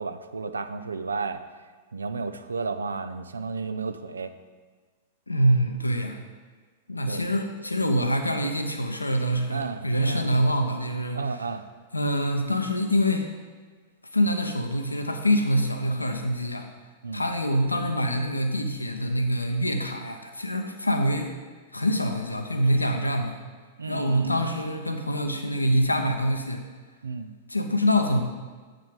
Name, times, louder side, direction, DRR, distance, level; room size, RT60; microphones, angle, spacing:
voice 1, 0.0-1.4 1.9-4.3 7.1-7.2 9.5-10.3 11.1-11.6 17.0-17.2 23.8-24.3 27.0-27.3, right 4 dB, 75° right, 10 dB, 0.4 m, -32 dB
voice 2, 5.3-6.2 6.9-11.5 11.9-13.3 14.1-16.7 17.1-21.3 21.7-23.4 23.8-26.6 27.5-28.2, equal, 85° left, 5 dB, 0.6 m, -25 dB
7.6 x 5.9 x 5.1 m, 1.5 s
figure-of-eight pair, 100°, 0 cm